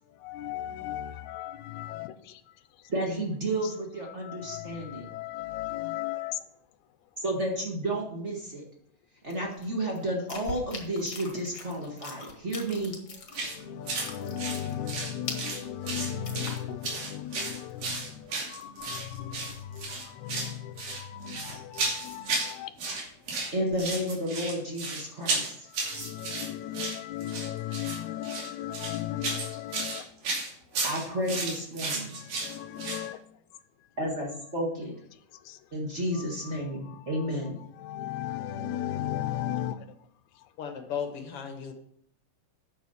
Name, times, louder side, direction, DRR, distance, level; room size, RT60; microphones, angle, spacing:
voice 1, 0.2-2.4 4.1-6.4 13.3-22.7 25.2-25.4 25.7-30.1 32.1-33.2 35.5-35.6 36.2-36.3 36.9-37.3 37.8-39.9, left 11 dB, 75° left, 1.8 m, -36 dB
voice 2, 2.9-5.1 7.2-8.6 9.2-13.0 23.5-25.7 30.8-32.1 34.0-35.0 35.7-37.6, right 1 dB, 35° right, 1.2 m, -31 dB
sound 1, 9.3-13.6 13.9-17.0 17.2-17.3 17.7-18.8 19.3-20.1, left 4 dB, 40° left, 1.5 m, -42 dB
sound 2, 13.3-13.6 13.9-14.1 14.4-15.6 15.9-16.6 16.8-19.0 19.3-19.5 19.8-20.5 20.8-22.5 22.8-23.5 23.8-33.1, right 3 dB, 85° right, 4.3 m, -33 dB
sound 3, 18.7-19.2 19.5-19.9 21.1-21.2 21.5-22.3 23.7-24.2 25.3-25.4 25.8-26.1, right 2 dB, 70° right, 6.0 m, -46 dB
voice 3, 40.6-41.7, left 7 dB, 60° left, 1.6 m, -35 dB
10.0 x 7.1 x 5.7 m
omnidirectional pair, 3.9 m